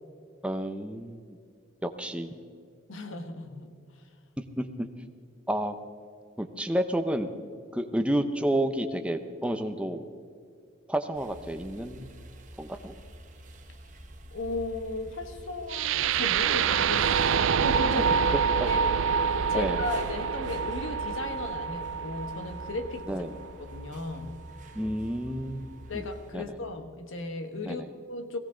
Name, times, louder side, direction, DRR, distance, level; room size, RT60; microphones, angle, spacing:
voice 1, 0.4-1.4 1.8-2.3 4.6-4.9 5.5-5.7 6.4-7.3 7.7-10.1 10.9-12.1 12.6-12.9 18.6-18.7 19.5-19.8 23.1-23.4 24.7-26.1 26.3-26.6 27.6-27.9, right 1 dB, 5° right, 7 dB, 0.7 m, -30 dB
voice 2, 2.9-3.7 14.3-17.3 17.6-18.1 18.6-18.8 19.5-23.1 23.6-24.4 25.9-27.8 28.1-28.4, left 2 dB, 70° left, 8 dB, 1.2 m, -36 dB
sound 1, 11.1-26.3, right 1 dB, 40° right, 1.3 m, -46 dB
sound 2, 15.7-23.7, right 7 dB, 65° right, 0.4 m, -27 dB
17.5 x 16.0 x 3.8 m, 2.3 s
head